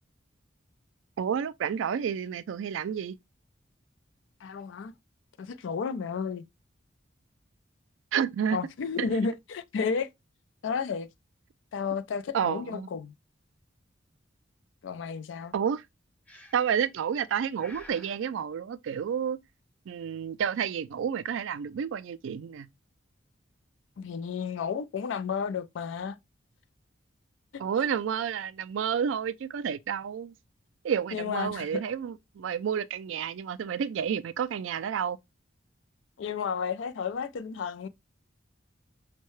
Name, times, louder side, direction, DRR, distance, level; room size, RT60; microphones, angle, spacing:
voice 1, 1.2-3.2 8.1-8.6 12.3-12.9 15.5-15.8 16.5-19.4 19.9-22.7 27.6-30.3 30.8-35.2, right 7 dB, 80° right, 0.3 m, -30 dB
voice 2, 4.4-4.9 5.4-6.5 8.5-10.1 10.6-11.1 11.7-13.1 14.8-15.5 24.0-26.2 31.1-31.8 36.2-37.9, left 5 dB, 75° left, 0.3 m, -32 dB
Breathing, 16.3-16.9 17.6-18.2, left 1 dB, 5° left, 0.5 m, -50 dB
5.4 x 2.1 x 3.0 m
head